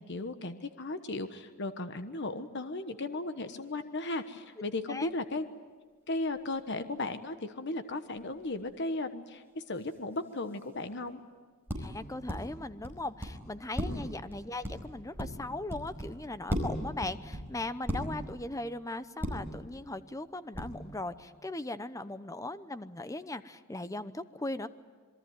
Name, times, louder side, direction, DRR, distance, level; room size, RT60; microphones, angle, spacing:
voice 1, 0.0-5.4 6.1-11.2 13.9-14.1, left 2 dB, 55° left, 9 dB, 1.2 m, -36 dB
sound 1, 4.2-4.3 8.3-8.6 10.8-11.1 11.7-12.4 12.8-13.3 13.7-16.2 16.5-18.3 19.2-19.6 20.5-20.9, equal, 10° right, 5.1 m, -36 dB
voice 2, 11.8-24.7, left 2 dB, 15° left, 13 dB, 0.8 m, -39 dB
27.0 x 22.5 x 9.5 m, 1.4 s
head